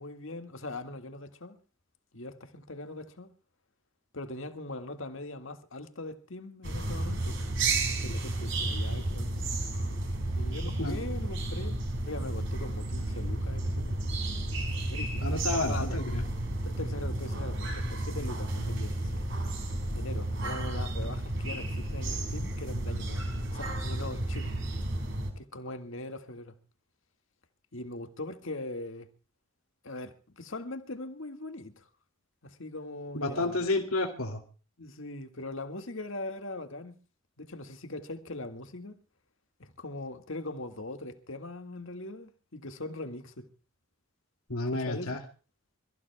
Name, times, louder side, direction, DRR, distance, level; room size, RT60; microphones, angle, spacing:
voice 1, 0.0-1.6 2.1-3.3 4.1-7.5 7.9-9.4 10.3-11.8 12.0-14.0 14.9-15.3 15.6-16.0 16.6-19.2 19.9-24.5 25.4-26.6 27.7-29.1 29.8-31.9 32.4-33.7 34.8-37.0 37.4-39.0 39.6-43.5 44.7-45.2, left 2 dB, 65° left, 1.8 m, -41 dB
sound 1, 6.6-25.3, right 2 dB, 55° right, 4.6 m, -32 dB
voice 2, 15.2-16.2 33.1-34.4 44.5-45.2, left 2 dB, 80° left, 2.5 m, -30 dB
27.5 x 15.0 x 2.2 m
head